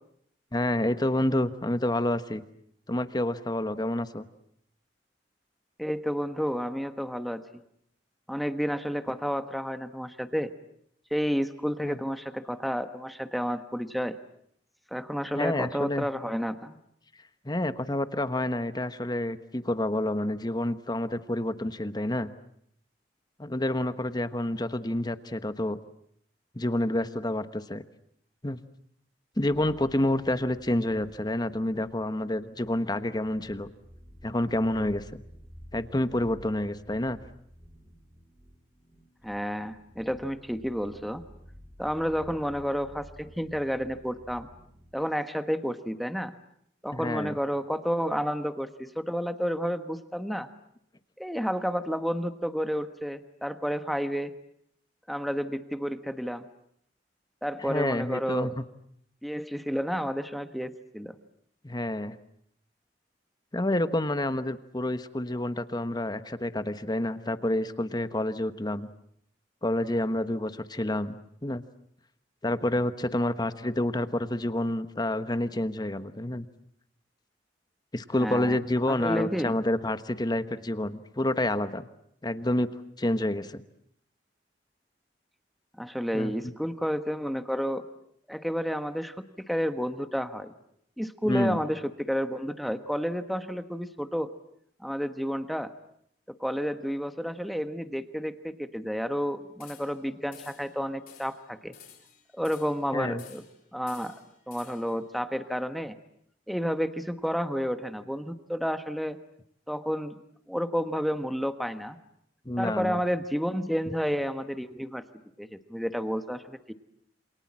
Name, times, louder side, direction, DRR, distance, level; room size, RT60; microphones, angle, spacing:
voice 1, 0.5-2.4 2.9-4.3 11.8-12.0 15.3-16.1 17.4-22.3 23.4-25.8 26.5-27.8 28.4-28.6 29.4-33.7 34.2-35.2 35.7-37.2 46.9-47.4 57.6-58.6 61.6-62.2 63.5-68.9 69.6-71.6 72.4-76.5 77.9-81.9 82.2-82.7 83.0-83.6 86.1-86.3 91.2-91.6 102.9-103.2 112.4-113.0, left 1 dB, 25° left, 12 dB, 1.2 m, -28 dB
voice 2, 5.8-7.4 8.3-10.5 11.1-14.2 14.9-16.8 39.2-41.2 41.8-44.5 44.9-46.3 46.8-50.5 51.2-54.3 55.1-56.5 57.4-58.5 59.2-61.2 78.2-78.6 78.9-79.6 85.8-87.8 88.3-90.5 91.0-94.3 94.8-95.7 96.3-101.7 102.3-103.4 103.7-104.2 104.5-106.0 106.5-109.2 109.7-110.2 110.5-112.0 112.6-115.0 115.4-116.7, equal, ahead, 9 dB, 1.2 m, -31 dB
sound 1, 32.0-45.1, equal, 30° right, 5.6 m, -52 dB
sound 2, 99.6-100.0 100.3-100.7 101.1-101.4 101.7-102.8 103.2-103.6 103.9-105.0, left 9 dB, 55° left, 5.3 m, -52 dB
28.5 x 26.5 x 7.5 m, 0.70 s
head